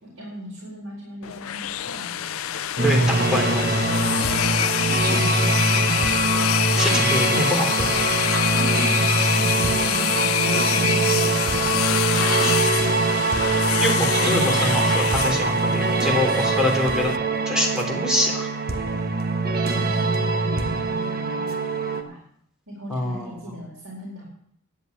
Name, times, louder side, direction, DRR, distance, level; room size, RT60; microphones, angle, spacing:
voice 1, 0.0-2.9 4.8-6.0 8.5-11.9 19.6-22.2 22.7-24.2, equal, 80° right, -4 dB, 4.4 m, -39 dB
sound 1, 1.2-17.2, left 11 dB, 85° left, 0.5 m, -25 dB
sound 2, 2.8-22.0, right 3 dB, 50° right, 1.3 m, -23 dB
voice 2, 3.3-3.7 6.7-7.9 12.1-12.7 13.8-17.1 17.4-18.5 22.9-23.5, left 1 dB, 5° right, 0 dB, 3.3 m, -25 dB
11.0 x 8.1 x 8.5 m, 0.69 s
head